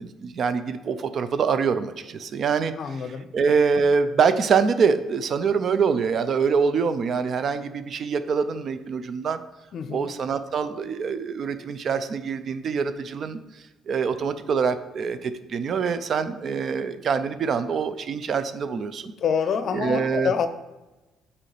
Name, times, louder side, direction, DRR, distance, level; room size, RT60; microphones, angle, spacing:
voice 1, 0.0-9.4 9.9-13.4 13.9-19.1 19.7-20.3, right 5 dB, 55° right, 11 dB, 0.5 m, -25 dB
voice 2, 2.8-3.3 9.7-10.1 19.2-20.5, left 7 dB, 60° left, 10 dB, 0.5 m, -26 dB
7.6 x 4.1 x 3.3 m, 1.1 s
cardioid pair, 85°, 0 cm